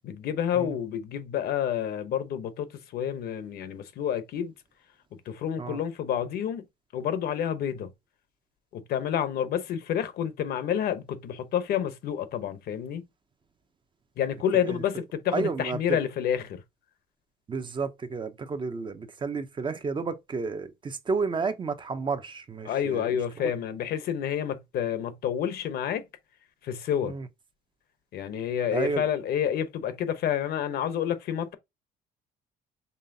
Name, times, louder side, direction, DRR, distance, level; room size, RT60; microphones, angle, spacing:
voice 1, 0.0-4.5 5.1-6.7 6.9-7.9 8.7-13.0 14.2-16.6 22.7-26.1 26.6-27.1 28.1-31.5, left 9 dB, 65° left, 0.9 m, -29 dB
voice 2, 15.3-15.8 17.5-23.5 27.0-27.3 28.7-29.1, right 4 dB, 30° right, 0.6 m, -31 dB
5.5 x 3.2 x 2.7 m
cardioid pair, 110°, 17 cm